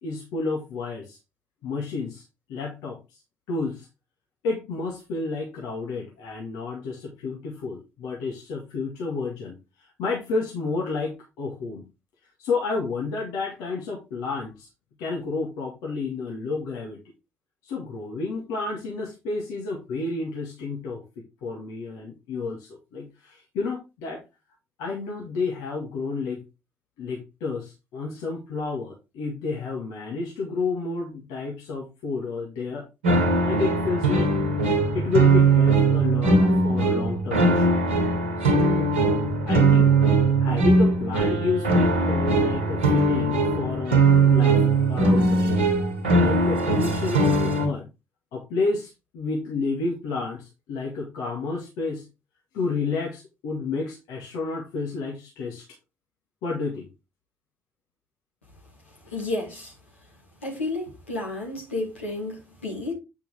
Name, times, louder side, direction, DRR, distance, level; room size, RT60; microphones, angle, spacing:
voice 1, 0.0-1.2 1.6-2.2 2.5-3.2 3.5-3.9 4.4-11.8 12.4-14.7 15.0-17.0 17.6-24.2 24.8-26.4 27.0-32.9 33.5-34.3 34.9-37.8 38.4-38.9 39.4-39.9 40.4-45.7 46.2-47.9 48.3-52.1 52.5-55.7 56.4-56.9 59.1-59.2, left 4 dB, 65° left, 1.9 m, -30 dB
sound 1, 33.0-47.7, right 3 dB, 80° right, 1.7 m, -20 dB
voice 2, 59.1-59.7 60.4-62.9, left 2 dB, 85° left, 2.8 m, -31 dB
8.7 x 5.7 x 3.5 m
figure-of-eight pair, 40°, 7 cm